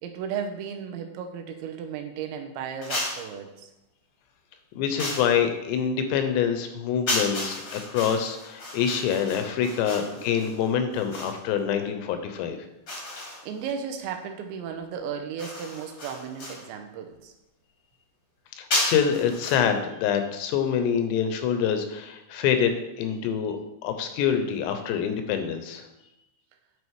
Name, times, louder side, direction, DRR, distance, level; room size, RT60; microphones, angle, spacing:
voice 1, 0.0-3.7 10.2-10.3 13.4-17.3, right 7 dB, 85° right, 5 dB, 3.1 m, -35 dB
sound 1, 2.8-3.3 5.0-5.4 7.1-11.4 12.9-13.7 15.4-16.7 18.7-19.6, left 1 dB, 40° left, 1.4 m, -32 dB
voice 2, 4.8-12.6 18.6-25.9, left 8 dB, 80° left, 7 dB, 2.8 m, -26 dB
9.6 x 5.1 x 4.7 m, 0.92 s
omnidirectional pair, 5.2 m